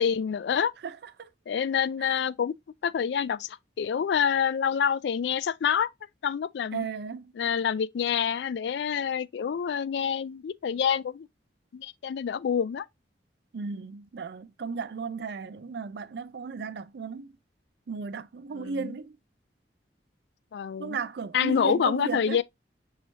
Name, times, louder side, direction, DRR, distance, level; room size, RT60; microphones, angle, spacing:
voice 1, 0.0-0.7 1.5-2.5 2.8-5.9 6.2-6.9 7.3-11.3 11.7-12.9 18.5-18.9 20.5-21.0 21.3-22.4, left 7 dB, 70° left, 0.3 m, -27 dB
voice 2, 0.8-1.3 2.0-2.2 6.7-7.3 13.5-17.3 17.9-19.1 20.8-22.4, right 5 dB, 65° right, 0.4 m, -35 dB
5.6 x 3.0 x 2.7 m
head